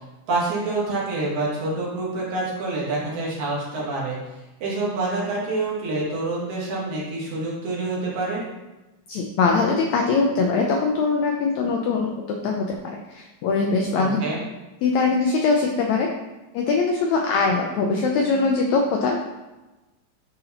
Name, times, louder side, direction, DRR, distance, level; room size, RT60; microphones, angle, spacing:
voice 1, 0.3-4.2 4.6-8.4 13.9-14.4, right 2 dB, 65° right, -5 dB, 2.6 m, -27 dB
voice 2, 9.1-14.2 14.8-16.1 16.5-19.2, left 4 dB, 80° left, 1 dB, 1.6 m, -22 dB
9.8 x 3.8 x 2.9 m, 1.1 s
omnidirectional pair, 3.8 m